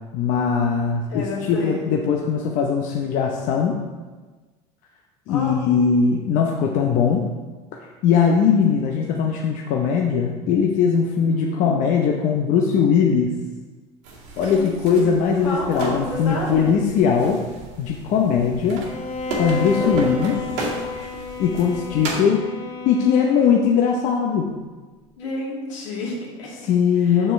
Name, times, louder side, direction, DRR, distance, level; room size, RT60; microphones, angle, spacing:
voice 1, 0.1-3.8 5.3-7.3 8.0-13.3 14.4-17.4 17.8-18.8 19.3-20.4 21.4-22.4 22.9-24.5 26.6-27.3, left 6 dB, 60° left, 0 dB, 0.7 m, -20 dB
voice 2, 1.1-1.8 5.3-5.6 11.2-11.9 14.4-15.1 15.4-16.7 19.4-19.6 25.2-26.5 27.0-27.2, left 2 dB, 90° left, -4 dB, 2.2 m, -30 dB
sound 1, 14.0-22.2, right 2 dB, 80° right, 2.4 m, -34 dB
Bowed string instrument, 18.8-23.9, left 2 dB, 40° left, 1.1 m, -31 dB
7.0 x 6.6 x 3.2 m, 1.3 s
supercardioid pair, 110°, 15 cm